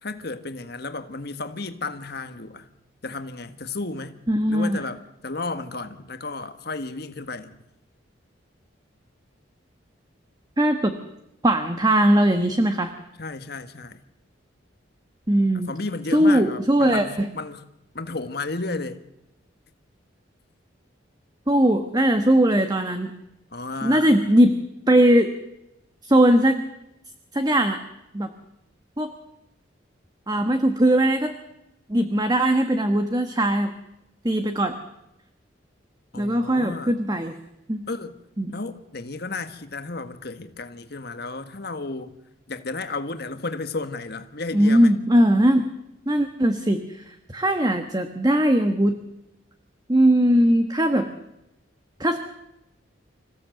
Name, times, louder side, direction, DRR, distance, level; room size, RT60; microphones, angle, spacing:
voice 1, 0.0-2.7 3.0-4.2 4.5-7.6 13.2-14.0 15.5-17.7 17.9-19.0 23.5-24.3 36.1-37.0 37.9-38.2 38.5-42.2 42.5-44.9, left 3 dB, 55° left, 1.6 m, -33 dB
voice 2, 4.3-4.8 10.6-10.9 11.4-12.9 15.3-15.7 16.1-17.3 21.5-23.1 23.8-24.6 24.9-25.3 26.0-26.6 27.3-27.8 28.1-28.3 29.0-29.1 30.3-31.3 31.9-33.7 34.2-34.8 36.1-37.3 37.7-37.8 38.4-38.5 44.5-45.7 46.1-49.0 49.9-51.1 52.0-52.2, right 1 dB, 20° right, 1.4 m, -20 dB
26.0 x 16.0 x 7.9 m
head